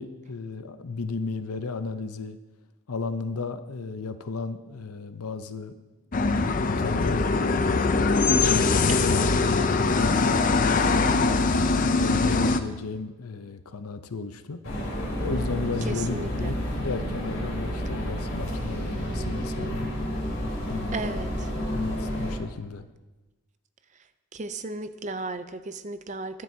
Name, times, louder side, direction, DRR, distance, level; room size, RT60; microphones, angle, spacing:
voice 1, 0.0-2.4 2.9-5.7 6.2-7.7 8.4-11.4 12.0-14.6 15.2-19.9 20.7-21.1 21.7-22.9, left 4 dB, 85° left, 10 dB, 0.7 m, -34 dB
sound 1, 6.1-12.6, left 3 dB, 40° left, 0.5 m, -22 dB
sound 2, 14.6-22.3, equal, 65° left, 3.8 m, -30 dB
voice 2, 15.8-16.6 20.9-21.5 24.3-26.4, right 3 dB, 35° right, 11 dB, 0.5 m, -35 dB
22.5 x 7.6 x 2.8 m, 1.1 s
head